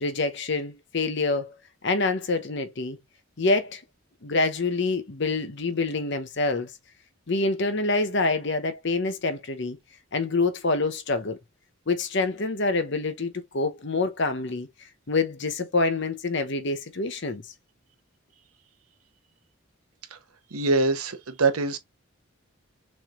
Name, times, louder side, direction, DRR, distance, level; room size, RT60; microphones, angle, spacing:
voice 1, 0.0-1.5 1.8-3.0 3.4-3.8 4.2-6.7 7.3-9.8 10.1-11.4 11.9-14.7 15.1-17.4, left 3 dB, 55° left, 0.9 m, -26 dB
voice 2, 20.5-21.8, right 3 dB, 90° right, 0.9 m, -23 dB
6.3 x 3.3 x 2.5 m
head